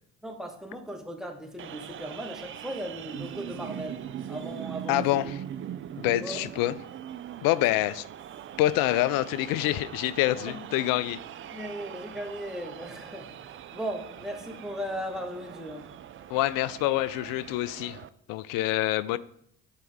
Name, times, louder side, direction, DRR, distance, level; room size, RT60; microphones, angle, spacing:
voice 1, 0.2-4.0 4.3-5.2 6.2-6.5 10.5-10.6 11.5-15.9, equal, ahead, 1.3 m, -37 dB
sound 1, 1.6-18.1, right 10 dB, 30° right, 0.4 m, -41 dB
voice 2, 4.9-5.4 6.0-6.7 7.4-8.1 8.6-11.2 16.3-18.0 18.3-19.2, left 15 dB, 60° left, 0.5 m, -26 dB
9.0 x 4.4 x 3.6 m
hypercardioid pair, 55°, 39 cm